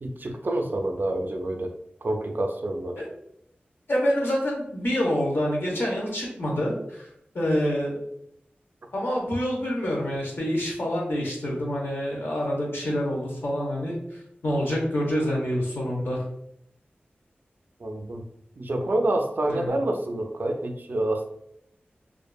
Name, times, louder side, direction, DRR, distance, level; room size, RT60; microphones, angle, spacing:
voice 1, 0.0-1.7 2.0-3.0 17.8-18.2 18.6-21.3, right 1 dB, 55° right, 3 dB, 0.4 m, -27 dB
voice 2, 3.9-7.1 7.3-8.0 8.9-16.2 18.8-18.9 19.5-19.8, equal, 70° left, -2 dB, 0.8 m, -27 dB
2.6 x 2.3 x 2.2 m, 0.74 s
wide cardioid pair, 55°, 4 cm